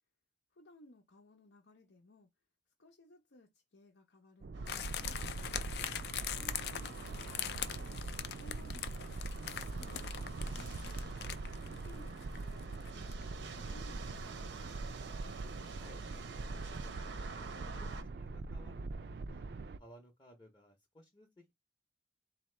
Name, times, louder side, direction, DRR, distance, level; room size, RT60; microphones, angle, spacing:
voice 1, 0.5-2.3 2.8-5.8 6.4-8.0 8.4-11.2 11.6-14.5, left 1 dB, 85° left, 0.8 m, -60 dB
sound 1, 4.4-19.8, right 3 dB, 60° right, 0.4 m, -43 dB
sound 2, 4.5-18.0, right 4 dB, 85° right, 0.8 m, -50 dB
sound 3, 4.7-13.3 13.5-13.6, left 10 dB, 65° left, 0.4 m, -42 dB
voice 2, 15.7-16.9 17.5-19.5 19.7-21.5, equal, 25° left, 0.7 m, -60 dB
4.0 x 2.7 x 3.2 m
head